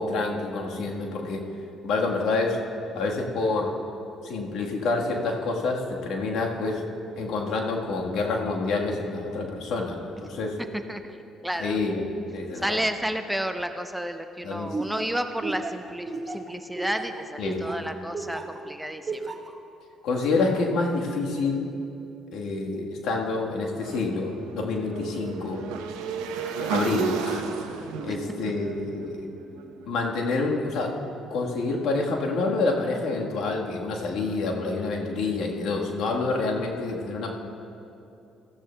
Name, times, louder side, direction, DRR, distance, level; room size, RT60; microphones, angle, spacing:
voice 1, 0.0-1.4 1.8-2.6 2.9-3.8 4.2-6.8 7.2-10.6 11.6-12.0 12.3-12.8 14.4-14.8 17.4-17.7 20.0-21.6 22.3-25.6 26.6-29.2 29.9-30.9 31.3-37.3, left 3 dB, 75° left, 0 dB, 1.4 m, -27 dB
voice 2, 10.7-11.8 12.5-19.3 28.1-28.2, equal, 5° right, 7 dB, 0.6 m, -31 dB
Laughter, 14.7-18.6 19.1-19.5, right 3 dB, 30° right, 1.0 m, -33 dB
Motorcycle / Engine, 23.8-29.9, right 6 dB, 90° right, 0.7 m, -33 dB
16.0 x 13.5 x 2.2 m, 2.8 s
supercardioid pair, 70°, 0 cm